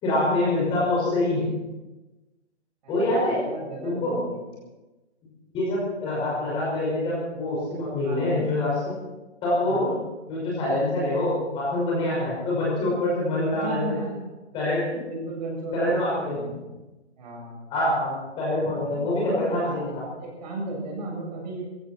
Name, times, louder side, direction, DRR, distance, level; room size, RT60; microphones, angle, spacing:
voice 1, 0.0-1.5 2.9-3.4 3.8-4.2 5.5-8.9 9.4-9.9 10.3-14.0 14.5-14.9 15.7-16.4 17.7-20.0, left 1 dB, 15° left, -6 dB, 5.6 m, -25 dB
voice 2, 2.8-4.6 8.0-8.5 9.6-10.0 13.5-14.2 14.9-16.6 17.2-17.7 18.9-21.7, right 2 dB, 35° right, -2 dB, 7.4 m, -35 dB
20.5 x 16.0 x 4.5 m, 1.1 s
hypercardioid pair, 160°, 35 cm